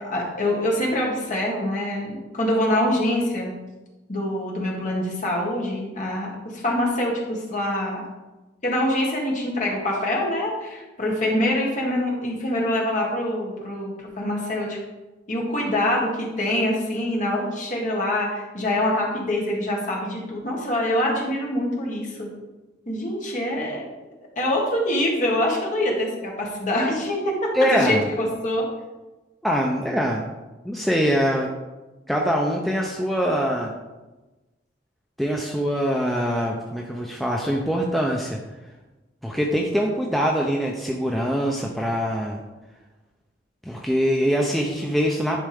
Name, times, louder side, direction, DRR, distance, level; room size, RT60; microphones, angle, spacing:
voice 1, 0.0-3.5 4.1-8.0 8.6-14.8 15.3-22.3 22.8-23.8 24.3-28.7, left 1 dB, 40° left, -2 dB, 1.7 m, -25 dB
voice 2, 27.5-28.1 29.4-30.3 30.6-31.5 32.1-33.7 35.2-38.4 39.2-42.4 43.6-45.4, equal, ahead, -1 dB, 0.5 m, -23 dB
10.5 x 4.3 x 3.5 m, 1.1 s
head